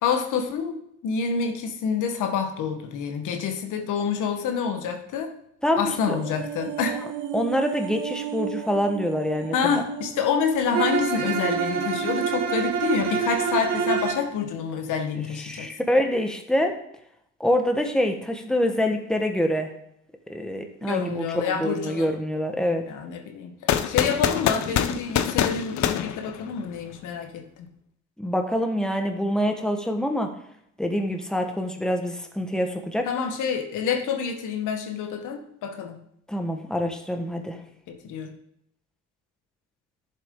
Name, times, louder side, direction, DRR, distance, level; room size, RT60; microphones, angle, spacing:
voice 1, 0.0-5.3 5.8-7.0 9.5-15.7 20.9-22.1 22.9-23.6 23.9-27.4 33.0-36.0 37.9-38.3, left 6 dB, 85° left, 5 dB, 1.2 m, -27 dB
voice 2, 5.6-6.2 7.3-9.8 15.4-16.8 17.4-19.7 20.3-22.8 28.2-30.3 30.8-33.1 36.3-37.6, equal, ahead, 4 dB, 1.3 m, -25 dB
sound 1, 5.6-14.1 14.4-14.5, right 9 dB, 80° right, 1.1 m, -36 dB
Bowed string instrument, 10.7-14.3, right 6 dB, 60° right, 1.8 m, -26 dB
sound 2, 23.7-26.9, left 10 dB, 65° left, 0.7 m, -25 dB
11.0 x 7.3 x 3.7 m, 0.73 s
cardioid pair, 90°, 30 cm